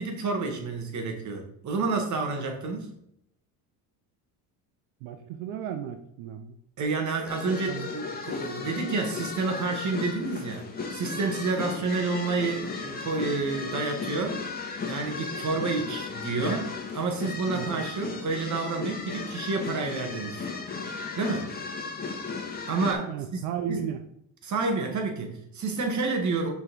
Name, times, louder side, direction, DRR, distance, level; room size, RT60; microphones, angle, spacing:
voice 1, 0.0-2.9 6.8-10.6 10.9-14.5 14.9-20.5 21.2-21.6 22.7-23.4 23.7-23.8 24.4-26.5, right 3 dB, 45° right, 3 dB, 2.0 m, -29 dB
voice 2, 5.0-6.5 7.7-7.9 17.5-17.8 23.1-24.0, right 9 dB, 90° right, 7 dB, 0.7 m, -34 dB
sound 1, 7.3-22.9, left 4 dB, 20° left, 1.8 m, -35 dB
6.5 x 4.5 x 4.6 m, 0.75 s
supercardioid pair, 100°, 40 cm